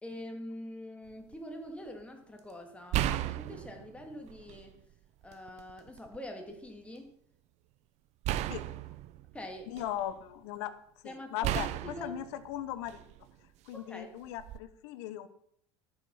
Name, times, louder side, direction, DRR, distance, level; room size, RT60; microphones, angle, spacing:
voice 1, 0.0-4.8 5.2-7.1 9.3-9.8 11.0-12.2 13.7-14.1, left 1 dB, 10° left, 3 dB, 2.5 m, -44 dB
sound 1, 1.1-1.3 2.9-4.8 5.2-6.2 8.2-10.2 11.4-13.3 14.4-14.6, right 13 dB, 45° right, 0.6 m, -35 dB
voice 2, 9.7-10.7 11.0-13.0 13.7-15.3, left 12 dB, 65° left, 13 dB, 1.2 m, -38 dB
12.0 x 6.9 x 5.8 m, 0.70 s
hypercardioid pair, 85°, 15 cm